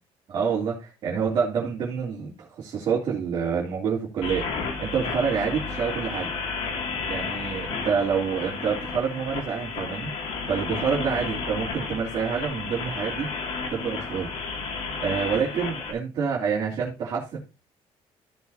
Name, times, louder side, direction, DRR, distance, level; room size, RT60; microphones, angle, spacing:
voice 1, 0.3-6.3 7.1-10.1 10.5-13.3 13.7-14.3 15.0-17.4, right 6 dB, 45° right, -5 dB, 3.1 m, -27 dB
sound 1, 4.2-15.9, left 4 dB, 70° left, 2.4 m, -32 dB
15.0 x 6.2 x 2.8 m, 0.28 s
cardioid pair, 175°, 11 cm